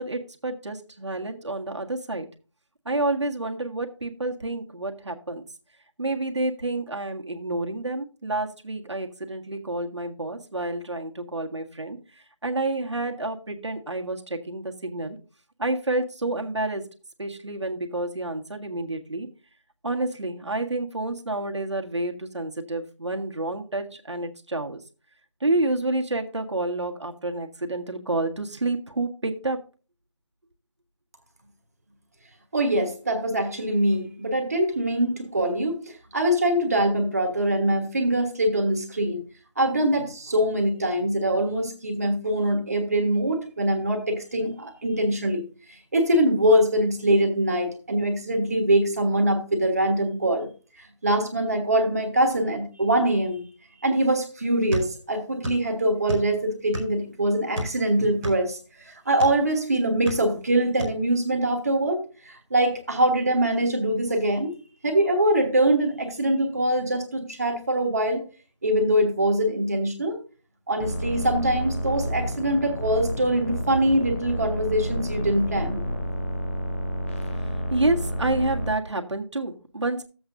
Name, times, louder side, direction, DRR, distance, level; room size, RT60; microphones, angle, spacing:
voice 1, 0.0-2.3 2.9-5.4 6.0-12.0 12.4-15.2 15.6-16.8 17.2-19.3 19.8-24.8 25.4-29.6 77.7-80.0, right 2 dB, 70° right, 3 dB, 1.7 m, -29 dB
voice 2, 32.5-39.2 39.6-45.4 45.9-50.5 50.8-53.4 53.8-64.5 64.8-68.2 68.6-70.2 70.7-75.8, right 1 dB, 30° right, 3 dB, 1.3 m, -23 dB
sound 1, 54.7-55.7 55.9-57.1 57.5-59.4 59.9-60.5 60.8-61.0, equal, 5° right, 0.8 m, -32 dB
sound 2, 70.8-78.7, equal, 25° left, 1.1 m, -30 dB
12.5 x 7.9 x 2.6 m, 0.35 s
figure-of-eight pair, 170°, 15 cm